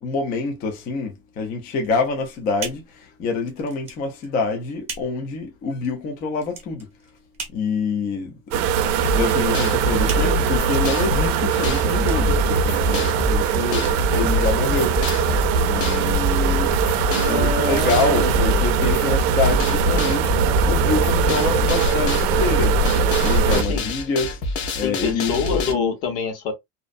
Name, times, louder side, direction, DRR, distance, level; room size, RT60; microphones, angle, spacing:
voice 1, 0.0-6.9 7.5-15.3 15.6-16.8 17.3-20.4 20.7-25.7, left 4 dB, 25° left, 0.3 m, -26 dB
sound 1, 1.8-13.1, right 4 dB, 15° right, 0.8 m, -40 dB
sound 2, 8.5-23.6, right 6 dB, 70° right, 0.5 m, -21 dB
sound 3, 9.0-25.7, left 2 dB, 55° left, 0.8 m, -26 dB
voice 2, 13.5-13.8 17.1-18.6 23.5-23.9 24.8-26.5, left 5 dB, 75° left, 1.1 m, -26 dB
2.5 x 2.1 x 2.4 m
cardioid pair, 160°, 40 cm